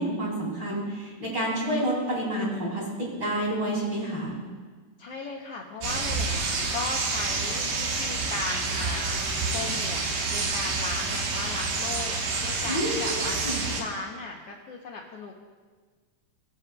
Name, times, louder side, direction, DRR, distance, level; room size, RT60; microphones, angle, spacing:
voice 1, 0.0-4.4 12.6-13.7, right 1 dB, 35° right, -5 dB, 3.1 m, -29 dB
voice 2, 5.0-9.2 9.5-10.0 10.3-15.3, left 3 dB, 90° left, -1 dB, 1.3 m, -37 dB
sound 1, 5.8-13.8, right 3 dB, 70° right, 2.6 m, -28 dB
20.5 x 7.4 x 2.2 m, 1.5 s
omnidirectional pair, 3.8 m